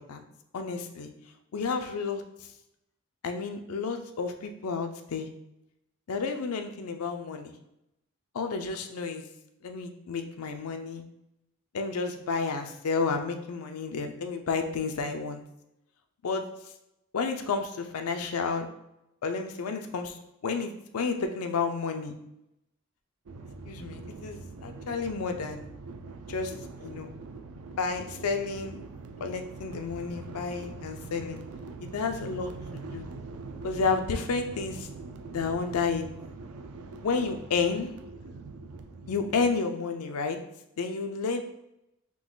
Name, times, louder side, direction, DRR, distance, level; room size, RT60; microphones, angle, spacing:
voice 1, 0.5-1.1 1.5-2.2 3.2-5.3 6.1-7.5 8.3-9.2 9.6-11.0 11.7-15.4 16.2-16.5 17.1-18.7 19.2-20.2 20.4-22.1 23.7-25.6 26.3-27.1 27.8-28.8 29.2-31.4 31.8-33.1 33.6-34.9 35.3-36.1 37.0-37.9 39.1-40.4 40.8-41.4, left 4 dB, 85° left, 6 dB, 0.5 m, -31 dB
sound 1, 23.3-39.5, right 3 dB, 85° right, 0.5 m, -43 dB
3.8 x 2.9 x 3.9 m, 0.86 s
head